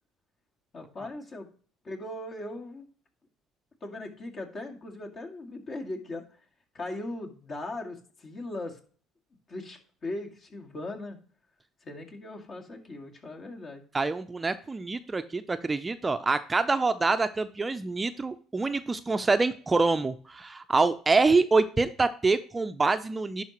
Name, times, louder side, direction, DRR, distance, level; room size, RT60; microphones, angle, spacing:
voice 1, 0.7-1.5 1.8-2.9 3.8-6.4 6.7-8.8 9.5-11.2 11.8-13.8, left 2 dB, 45° left, 1 dB, 2.1 m, -39 dB
voice 2, 13.9-23.4, right 3 dB, 20° right, 11 dB, 0.5 m, -26 dB
11.0 x 4.7 x 3.0 m, 0.42 s
supercardioid pair, 75°, 0 cm